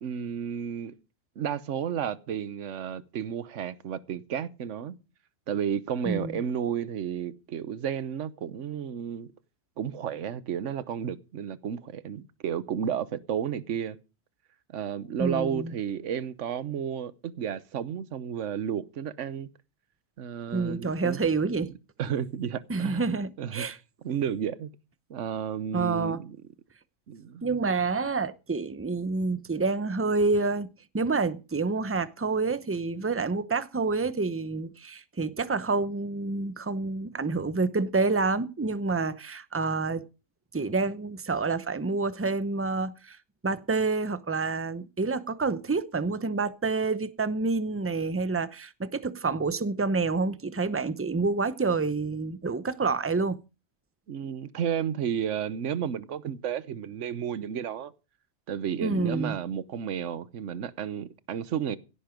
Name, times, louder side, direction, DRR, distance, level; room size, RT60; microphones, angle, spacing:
voice 1, 0.0-0.9 1.4-5.0 5.5-9.3 9.8-14.0 14.7-19.5 20.2-21.2 22.0-23.1 23.4-23.7 24.0-24.7 25.1-26.4 27.1-27.4 54.1-57.9 58.5-61.8, right 8 dB, 70° right, 1.2 m, -32 dB
voice 2, 6.0-6.4 15.2-15.7 20.5-21.7 22.7-23.8 25.7-26.2 27.4-30.7 30.9-40.1 40.5-43.2 43.4-53.4 58.8-59.4, right 3 dB, 15° right, 0.6 m, -28 dB
16.5 x 10.0 x 5.2 m
omnidirectional pair, 1.3 m